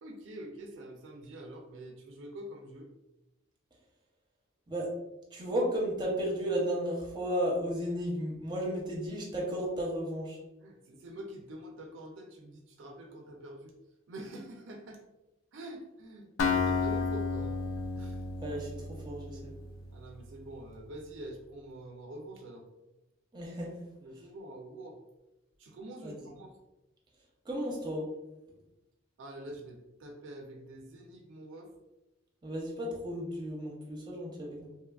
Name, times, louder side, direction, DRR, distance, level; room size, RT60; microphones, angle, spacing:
voice 1, 0.0-2.9 10.6-13.8 14.1-15.0 15.5-17.6 18.0-18.2 19.9-22.6 24.0-25.0 25.6-26.5 29.2-31.7, right 1 dB, 65° right, 3 dB, 0.4 m, -46 dB
voice 2, 5.3-10.4 18.4-18.8 19.0-19.5 23.3-23.7 26.0-26.3 27.4-28.0 32.4-34.7, equal, 20° right, -3 dB, 0.6 m, -33 dB
Acoustic guitar, 16.4-20.2, left 4 dB, 90° left, 0.4 m, -32 dB
3.0 x 2.2 x 2.2 m, 0.96 s
head